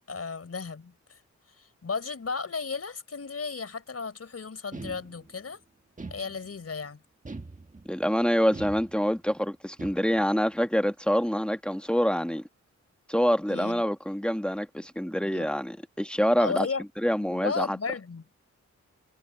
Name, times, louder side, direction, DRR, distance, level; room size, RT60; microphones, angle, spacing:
voice 1, 0.1-1.2 1.6-5.6 6.1-7.0 13.5-13.8 15.2-15.5 16.4-16.8 17.2-18.2, left 5 dB, 55° left, 4.2 m, -34 dB
sound 1, 4.7-5.5 6.0-6.7 7.2-8.0 8.5-9.3 9.8-10.4, right 3 dB, 25° right, 1.6 m, -42 dB
voice 2, 7.8-12.4 13.1-16.7 17.0-17.8, equal, 5° left, 1.4 m, -26 dB
wide cardioid pair, 100°, 29 cm